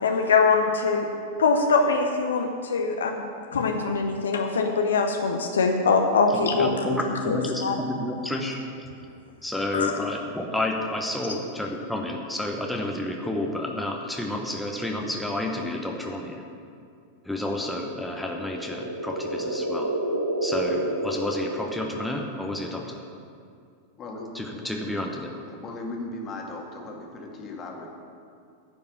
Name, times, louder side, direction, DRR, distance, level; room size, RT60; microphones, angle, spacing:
voice 1, 0.0-1.1 1.4-3.2 3.5-7.0 7.3-7.8 9.7-9.9, left 4 dB, 65° left, 4 dB, 0.7 m, -23 dB
voice 2, 6.3-8.6 9.4-16.4 17.2-19.9 20.4-23.0 24.3-25.4, left 1 dB, 5° left, 0 dB, 1.0 m, -30 dB
sound 1, 18.2-22.4, right 1 dB, 85° right, 0.8 m, -30 dB
voice 3, 24.0-24.3 25.5-27.9, left 2 dB, 30° left, 0 dB, 1.8 m, -37 dB
10.5 x 5.3 x 8.2 m, 2.4 s
figure-of-eight pair, 90°, 0 cm